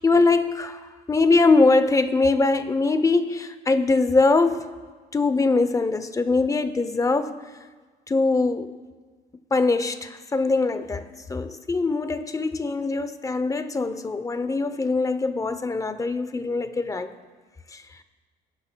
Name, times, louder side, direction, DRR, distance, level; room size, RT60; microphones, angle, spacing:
voice 1, 0.0-4.7 5.1-7.4 8.1-8.7 9.5-17.1 17.7-17.8, left 3 dB, 20° left, 11 dB, 0.6 m, -22 dB
19.0 x 10.5 x 2.2 m, 1.4 s
cardioid pair, 110°, 17 cm